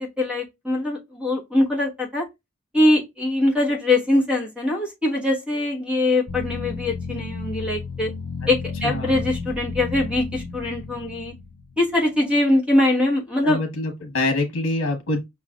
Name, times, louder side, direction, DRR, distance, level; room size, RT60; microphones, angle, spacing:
voice 1, 0.2-2.2 2.7-8.1 8.5-11.3 11.8-13.6, left 1 dB, 5° right, 1.3 m, -22 dB
sound 1, 6.3-12.0, left 4 dB, 50° left, 0.5 m, -33 dB
voice 2, 8.8-9.2 13.4-15.2, left 2 dB, 70° left, 1.1 m, -25 dB
5.7 x 3.2 x 2.3 m
head